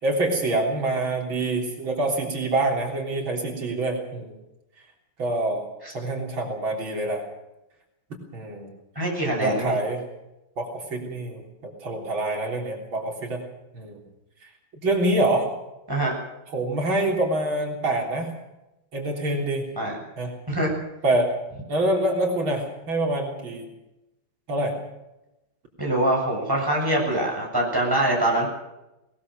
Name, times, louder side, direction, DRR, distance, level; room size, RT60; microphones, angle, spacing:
voice 1, 0.0-4.3 5.2-5.7 5.9-7.2 8.1-8.7 9.4-10.0 10.6-13.4 13.7-14.0 14.4-14.5 14.8-15.5 16.5-18.3 18.9-19.7 20.2-20.3 21.0-21.3 21.7-23.7 24.5-24.8, right 2 dB, 80° right, 1 dB, 4.4 m, -26 dB
voice 2, 9.0-9.8 15.9-16.1 19.8-20.0 20.5-20.8 25.8-28.5, right 1 dB, 10° right, -2 dB, 7.4 m, -24 dB
21.0 x 19.5 x 6.6 m, 0.94 s
omnidirectional pair, 2.2 m